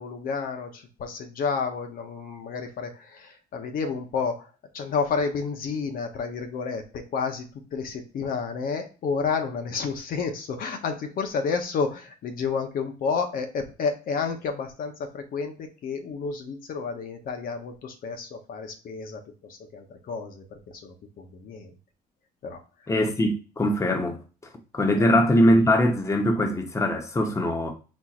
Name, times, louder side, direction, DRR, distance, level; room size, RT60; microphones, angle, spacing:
voice 1, 0.0-21.7 22.4-22.6, left 5 dB, 55° left, 0.8 m, -31 dB
voice 2, 22.9-24.2 24.7-27.7, left 1 dB, 15° left, 0.9 m, -22 dB
4.5 x 4.2 x 2.4 m
cardioid pair, 110°, 17 cm